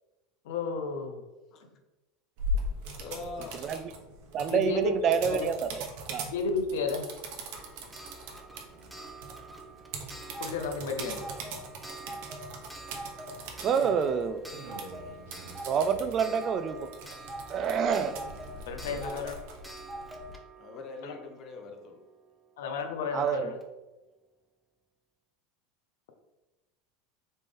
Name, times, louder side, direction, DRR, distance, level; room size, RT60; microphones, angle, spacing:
voice 1, 0.4-1.2 4.5-4.9 5.2-5.5 6.2-7.1 10.4-11.2 13.8-14.0 18.6-19.3 21.0-21.1 22.6-23.6, left 4 dB, 80° left, 4 dB, 0.6 m, -32 dB
sound 1, 2.4-20.3, equal, 70° right, 0.9 m, -41 dB
voice 2, 3.0-3.9 18.8-19.2 20.6-22.0, left 3 dB, 45° left, 5 dB, 0.8 m, -43 dB
voice 3, 4.3-6.3 13.6-14.4 15.7-16.9 17.5-18.1 23.1-23.5, right 7 dB, 40° right, 11 dB, 0.3 m, -27 dB
Clock, 7.5-22.1 23.3-23.4 23.6-23.7, right 1 dB, 5° right, 0.6 m, -45 dB
4.0 x 3.3 x 3.7 m, 1.1 s
hypercardioid pair, 100°, 0 cm